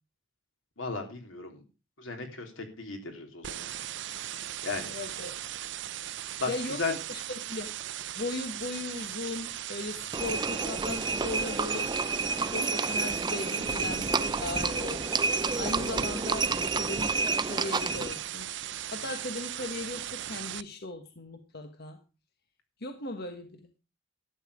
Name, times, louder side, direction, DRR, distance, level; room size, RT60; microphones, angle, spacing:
voice 1, 0.8-1.6 2.0-3.7 4.6-4.9 6.4-6.5 6.8-6.9, left 4 dB, 90° left, 4 dB, 3.4 m, -35 dB
sound 1, 3.4-20.6, right 12 dB, 65° right, 0.6 m, -38 dB
voice 2, 4.9-5.3 6.5-7.2 7.5-7.7 8.1-11.9 12.5-18.5 18.9-22.0 22.8-23.7, left 2 dB, 55° left, 6 dB, 1.4 m, -38 dB
Livestock farm animals working animals, 10.1-18.2, right 4 dB, 20° right, 0.6 m, -30 dB
12.5 x 9.3 x 4.9 m, 0.31 s
head